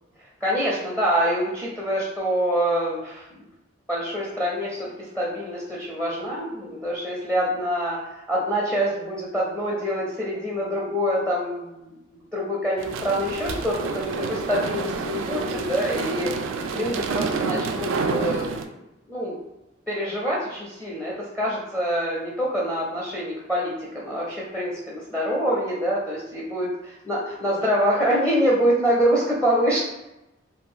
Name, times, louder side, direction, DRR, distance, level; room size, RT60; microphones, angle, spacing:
voice 1, 0.4-3.3 3.9-11.9 12.3-18.6 19.1-19.4 19.9-26.7 27.0-29.8, equal, 5° left, -5 dB, 0.5 m, -25 dB
sound 1, 12.8-18.6, right 4 dB, 75° right, 0.3 m, -28 dB
2.6 x 2.4 x 3.6 m, 0.93 s
head